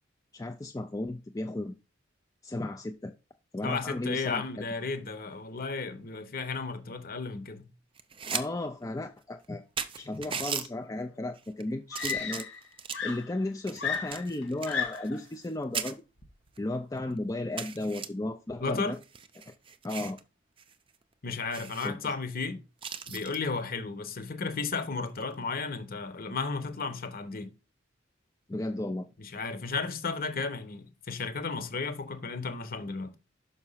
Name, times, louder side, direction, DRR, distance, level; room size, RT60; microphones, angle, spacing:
voice 1, 0.3-1.8 2.4-3.1 3.5-4.4 8.3-9.6 9.9-12.5 13.0-16.0 16.6-19.0 19.5-19.6 19.8-20.2 21.8-22.1 28.5-29.1, left 2 dB, 20° left, 0.4 m, -34 dB
voice 2, 3.6-7.7 18.6-19.0 21.2-22.6 23.1-27.5 29.2-33.1, left 4 dB, 45° left, 1.1 m, -34 dB
sound 1, 8.0-8.5 8.8-8.9 9.4-9.5 9.8-10.7 11.4-11.6 11.9-13.1 13.7-15.5 15.7-15.9 16.6-16.7 17.0-17.1 17.6-18.1 18.9-20.2 20.6-20.7 21.0-21.1 21.5-21.9 22.8-23.4 25.1-25.3, right 7 dB, 25° right, 0.6 m, -37 dB
Screaming, 11.1-11.2 11.9-12.7 12.9-15.2 16.2-16.5, left 6 dB, 75° left, 2.3 m, -34 dB
5.9 x 5.4 x 5.7 m
head